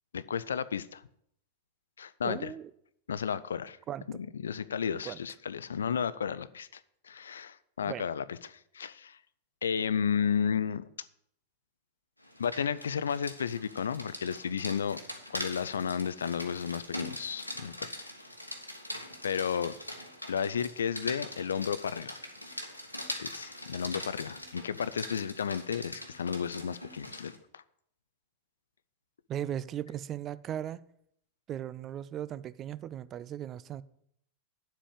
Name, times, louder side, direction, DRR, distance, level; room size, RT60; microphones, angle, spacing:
voice 1, 0.1-1.0 2.0-2.5 3.1-3.8 4.1-9.2 9.6-10.8 12.4-15.0 15.3-18.1 19.2-19.7 20.3-22.2 23.2-27.6, left 7 dB, 70° left, 0.4 m, -33 dB
voice 2, 2.2-2.7 3.9-4.1 5.0-5.2 7.9-8.1 29.3-30.8 31.5-33.8, right 10 dB, 30° right, 0.4 m, -37 dB
Rain, 12.2-27.4, left 1 dB, 90° left, 1.1 m, -42 dB
9.9 x 7.5 x 4.9 m
figure-of-eight pair, 90°, 0 cm